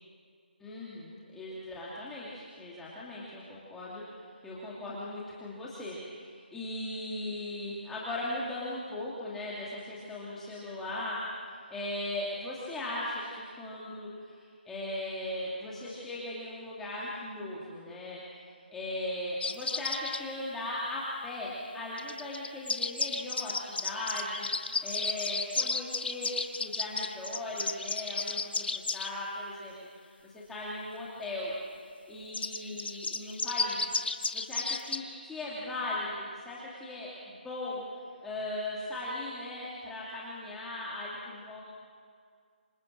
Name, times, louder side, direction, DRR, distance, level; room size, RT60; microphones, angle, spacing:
voice 1, 0.6-11.2 11.5-14.4 14.6-18.2 18.7-24.5 24.8-26.3 26.6-31.5 31.8-34.0 34.3-37.8 38.2-41.6, left 1 dB, 5° left, -8 dB, 2.7 m, -38 dB
sound 1, 19.4-20.2 22.0-29.1 32.3-35.0, left 4 dB, 75° left, 1.5 m, -33 dB
26.5 x 26.5 x 7.6 m, 2.1 s
hypercardioid pair, 170°, 6 cm